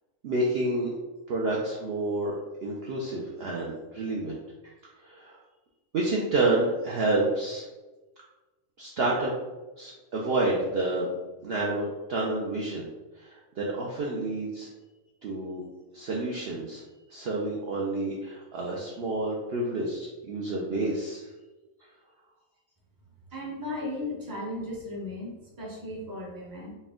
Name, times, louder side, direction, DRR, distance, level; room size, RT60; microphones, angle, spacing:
voice 1, 0.2-0.9 1.3-2.3 2.6-4.3 4.6-4.7 5.0-5.4 5.9-7.6 8.8-9.3 9.8-11.1 11.4-12.9 13.2-14.7 15.2-15.6 15.9-16.8 17.1-21.3, right 2 dB, 60° right, -3 dB, 0.7 m, -29 dB
voice 2, 23.3-26.7, left 1 dB, 20° right, -4 dB, 0.8 m, -36 dB
4.3 x 2.2 x 3.6 m, 1.1 s
omnidirectional pair, 1.4 m